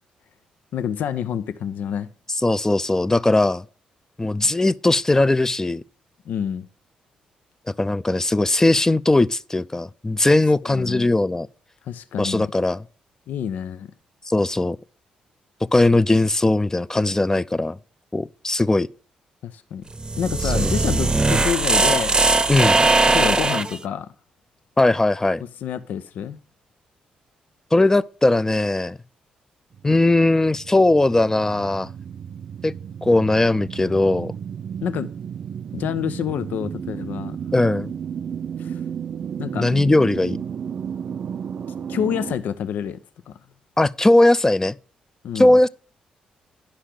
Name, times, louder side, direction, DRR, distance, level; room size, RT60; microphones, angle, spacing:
voice 1, 0.7-2.1 6.3-6.6 10.6-11.1 11.8-12.5 13.3-13.9 19.4-19.9 20.2-22.2 22.9-24.1 25.6-26.4 34.8-35.1 35.7-37.4 38.6-38.8 39.4-39.7 41.9-43.0 43.3-43.4 45.2-45.6, left 8 dB, 70° left, 0.6 m, -28 dB
voice 2, 2.4-3.6 4.2-5.8 7.8-11.5 12.2-12.8 14.3-14.8 15.7-17.8 18.1-18.9 20.5-20.7 22.5-22.8 24.8-25.4 27.7-29.0 29.8-31.9 32.6-32.7 33.0-34.3 37.5-37.9 39.6-40.4 43.8-44.8 45.3-45.7, left 2 dB, 15° left, 0.6 m, -19 dB
sound 1, 19.9-23.8, right 3 dB, 25° right, 0.8 m, -19 dB
sound 2, 29.7-42.3, right 8 dB, 55° right, 0.5 m, -33 dB
10.5 x 5.7 x 6.6 m
supercardioid pair, 50°, 3 cm